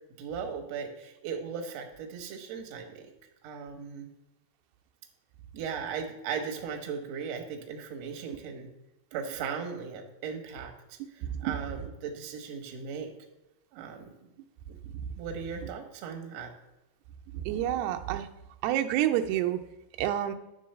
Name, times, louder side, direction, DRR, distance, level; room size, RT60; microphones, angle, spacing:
voice 1, 0.2-3.1 3.4-4.1 5.5-8.7 9.1-13.1 13.7-14.3 15.2-16.5, right 6 dB, 70° right, 3 dB, 1.6 m, -37 dB
voice 2, 11.2-11.6 17.3-18.3 18.6-19.6 20.0-20.3, right 12 dB, 85° right, 5 dB, 2.5 m, -28 dB
10.0 x 3.9 x 6.6 m, 0.93 s
omnidirectional pair, 4.6 m